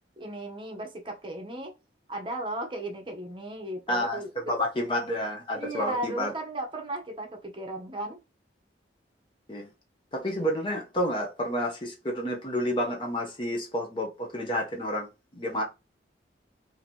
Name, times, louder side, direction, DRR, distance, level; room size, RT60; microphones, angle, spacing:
voice 1, 0.2-1.7 2.1-4.6 5.5-8.2, right 1 dB, 30° right, 0.7 m, -35 dB
voice 2, 3.9-4.2 4.5-6.3 9.5-9.7 10.1-15.6, equal, 30° left, 0.6 m, -30 dB
2.8 x 2.6 x 4.3 m
head